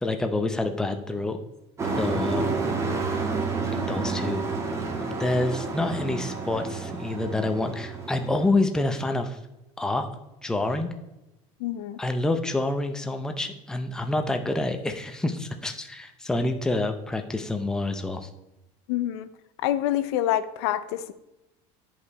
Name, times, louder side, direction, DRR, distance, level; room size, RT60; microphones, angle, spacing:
voice 1, 0.0-1.4 1.9-2.8 3.7-4.4 5.0-9.4 9.8-10.1 10.4-10.9 12.0-18.3, left 2 dB, 5° left, 6 dB, 0.6 m, -27 dB
Truck, 1.8-8.5, right 4 dB, 20° right, 1.3 m, -29 dB
voice 2, 11.6-12.0 18.9-19.3 19.6-21.1, left 12 dB, 85° left, 12 dB, 0.6 m, -26 dB
10.5 x 5.4 x 4.1 m, 0.96 s
cardioid pair, 155°, 14 cm